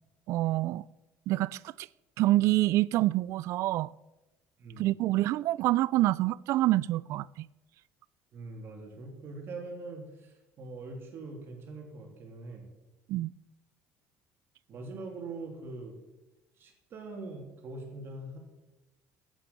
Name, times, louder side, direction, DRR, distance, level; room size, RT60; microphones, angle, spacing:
voice 1, 0.3-0.8 1.3-1.9 2.2-3.9 4.8-7.5 13.1-13.3, right 16 dB, 65° right, 0.3 m, -27 dB
voice 2, 8.3-12.6 14.7-15.9 16.6-18.4, right 3 dB, 45° right, 3.1 m, -43 dB
11.5 x 9.3 x 7.1 m
cardioid pair, 140°, 5 cm